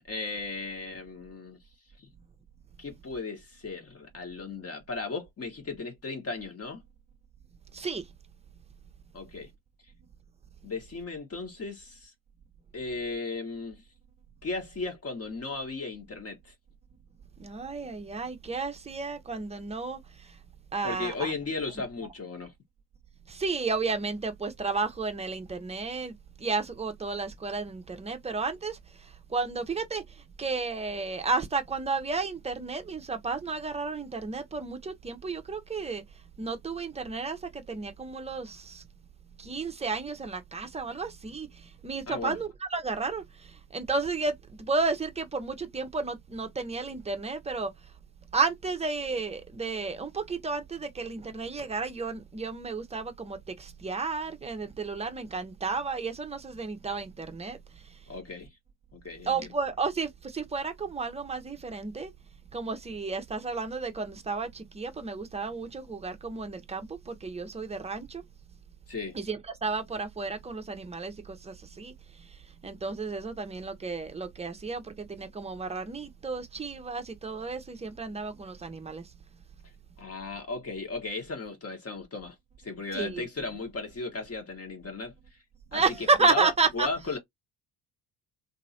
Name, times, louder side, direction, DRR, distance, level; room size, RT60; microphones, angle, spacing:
voice 1, 0.1-1.6 2.0-2.1 2.8-6.8 9.1-9.5 10.6-12.1 12.7-13.8 14.4-16.5 20.8-22.5 42.1-42.4 58.1-58.5 58.9-59.5 68.9-69.2 80.0-82.4 82.6-85.4 85.7-87.2, left 3 dB, 30° left, 1.3 m, -36 dB
voice 2, 7.7-8.0 17.4-20.4 20.7-21.3 23.3-30.0 30.4-36.0 36.4-38.8 39.4-47.7 48.3-57.6 59.2-62.1 62.5-68.2 69.1-71.9 72.6-79.0 82.9-83.2 85.7-86.9, right 4 dB, 15° right, 0.7 m, -32 dB
2.9 x 2.6 x 2.8 m
hypercardioid pair, 55°, 46 cm